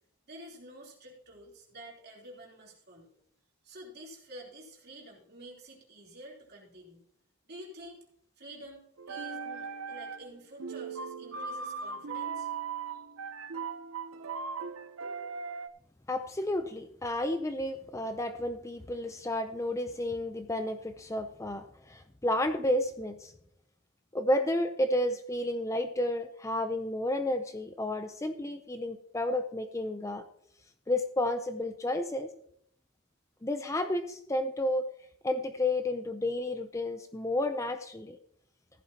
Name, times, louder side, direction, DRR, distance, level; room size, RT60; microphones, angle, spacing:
voice 1, 0.3-3.1 3.6-7.0 7.5-8.0 8.4-12.5 12.9-13.0, right 1 dB, 50° right, -2 dB, 3.4 m, -49 dB
sound 1, 9.0-10.3 10.6-15.7, right 5 dB, 80° right, 0.8 m, -38 dB
voice 2, 16.1-23.3 24.1-30.2 30.9-32.3 33.4-34.9 35.2-38.2, left 1 dB, 15° left, 8 dB, 0.5 m, -31 dB
15.0 x 11.0 x 2.9 m, 0.68 s
head